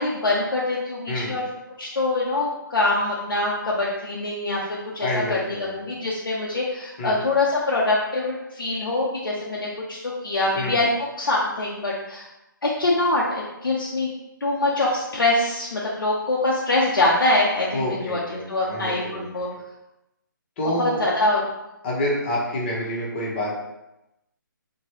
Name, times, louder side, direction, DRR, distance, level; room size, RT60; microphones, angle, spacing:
voice 1, 0.0-1.4 1.8-10.9 11.2-12.3 12.6-14.1 14.4-19.5 20.8-21.4, left 2 dB, 80° left, -5 dB, 0.6 m, -24 dB
voice 2, 5.0-5.9 7.0-7.2 10.5-10.8 17.7-19.4 20.6-21.0 21.8-23.6, left 1 dB, 30° left, -4 dB, 0.9 m, -28 dB
2.9 x 2.2 x 3.0 m, 0.92 s
figure-of-eight pair, 145°, 11 cm